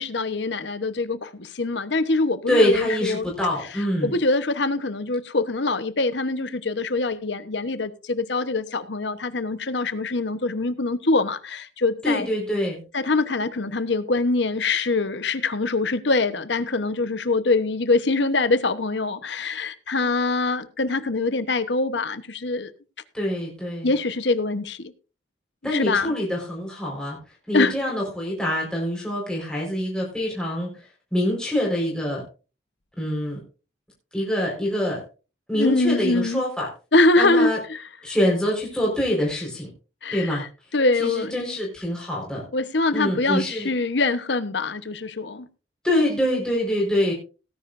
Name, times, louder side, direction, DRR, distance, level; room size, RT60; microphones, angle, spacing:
voice 1, 0.0-3.2 4.0-12.3 12.9-22.7 23.8-24.9 25.7-26.1 27.5-27.7 35.5-36.4 36.9-37.8 40.0-40.5 40.7-41.5 42.5-45.5, left 3 dB, 70° left, 1.0 m, -24 dB
voice 2, 2.5-4.1 12.0-12.8 23.1-23.9 25.6-27.2 27.5-32.2 33.0-33.4 34.1-35.0 35.5-36.7 37.2-37.6 38.0-39.7 40.1-40.4 40.9-42.4 42.9-43.7 45.8-47.1, left 1 dB, 5° left, 4.5 m, -25 dB
18.0 x 10.0 x 2.6 m
head